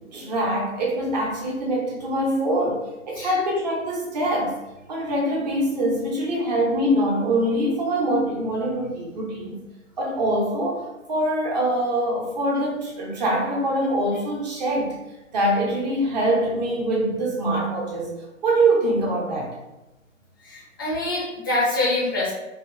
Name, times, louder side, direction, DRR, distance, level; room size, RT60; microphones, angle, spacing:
voice 1, 0.1-4.5 4.9-9.6 10.0-14.9 15.3-18.1 18.4-19.5, right 1 dB, 30° right, -2 dB, 0.8 m, -24 dB
voice 2, 20.4-22.3, left 2 dB, 15° left, -5 dB, 0.5 m, -25 dB
2.8 x 2.4 x 3.2 m, 1.0 s
hypercardioid pair, 145°, 40 cm